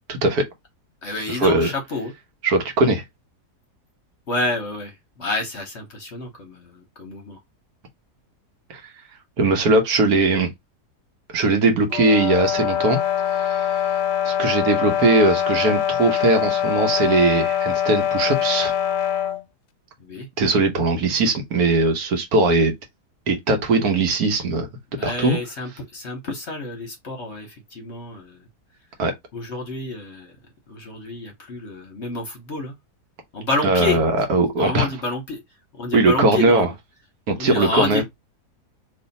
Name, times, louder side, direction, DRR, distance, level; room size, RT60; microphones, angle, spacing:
voice 1, 0.1-0.4 1.3-1.7 2.4-3.0 8.7-8.8 9.4-10.5 11.3-13.0 13.3-13.8 14.2-18.7 20.4-22.7 23.3-24.7 25.0-25.4 29.0-29.1 33.6-34.9 35.9-36.7 37.3-38.0, right 2 dB, 70° right, 1.4 m, -20 dB
voice 2, 1.0-2.1 4.3-7.4 20.0-20.3 24.9-28.5 29.3-30.3 30.7-32.8 33.3-34.0 34.5-35.4 35.7-36.7 37.4-38.0, left 2 dB, 50° left, 1.1 m, -29 dB
sound 1, 11.9-19.4, left 9 dB, 85° left, 1.2 m, -23 dB
3.2 x 2.7 x 3.9 m
omnidirectional pair, 1.7 m